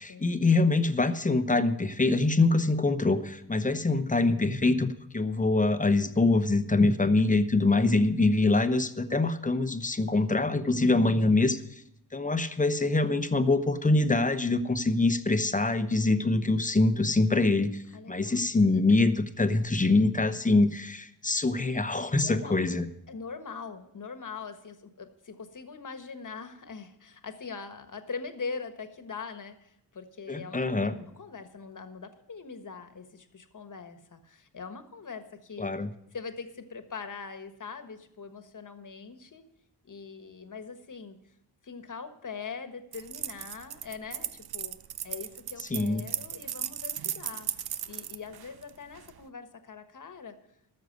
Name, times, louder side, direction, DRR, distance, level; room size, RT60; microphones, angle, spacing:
voice 1, 0.0-11.6 12.1-17.8 18.1-22.9 30.3-30.9 35.6-35.9 45.7-46.1, left 2 dB, 20° left, 10 dB, 0.9 m, -24 dB
voice 2, 17.9-18.5 20.3-20.4 22.2-22.6 23.1-35.7 36.1-39.4 39.8-41.2 41.6-44.8 45.0-50.4, left 5 dB, 45° left, 8 dB, 1.4 m, -42 dB
sound 1, 42.9-49.2, right 10 dB, 60° right, 0.6 m, -36 dB
13.5 x 6.7 x 7.9 m, 0.78 s
cardioid pair, 80°, 42 cm